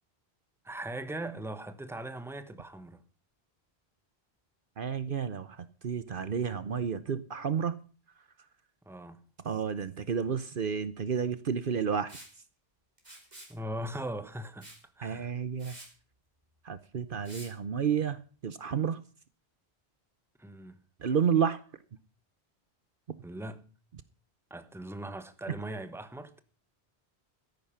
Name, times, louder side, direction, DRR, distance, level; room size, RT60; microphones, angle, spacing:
voice 1, 0.6-3.0 8.9-9.2 13.5-14.7 15.0-15.3 20.4-20.8 23.2-23.6 24.5-26.4, right 1 dB, ahead, 1.1 m, -40 dB
voice 2, 4.8-7.8 9.4-12.1 15.0-15.8 16.6-19.0 21.0-21.6, right 7 dB, 55° right, 1.0 m, -31 dB
Liquid, 12.1-12.3 13.0-13.5 14.6-14.8 15.2-15.3 15.6-15.9 17.2-17.5, right 1 dB, 40° right, 4.1 m, -48 dB
13.5 x 11.0 x 5.6 m
omnidirectional pair, 1.1 m